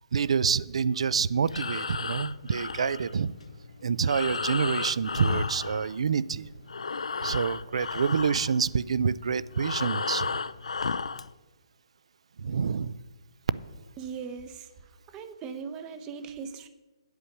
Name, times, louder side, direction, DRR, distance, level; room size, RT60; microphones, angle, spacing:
voice 1, 0.1-3.3 3.8-6.4 7.2-10.3 12.4-13.0, right 6 dB, 70° right, 0.4 m, -27 dB
Breathing, 1.4-6.4 6.6-11.3, left 4 dB, 90° left, 0.4 m, -33 dB
voice 2, 14.0-14.7 15.1-16.7, right 6 dB, 20° right, 0.6 m, -39 dB
8.3 x 8.2 x 5.9 m
hypercardioid pair, 155°, 3 cm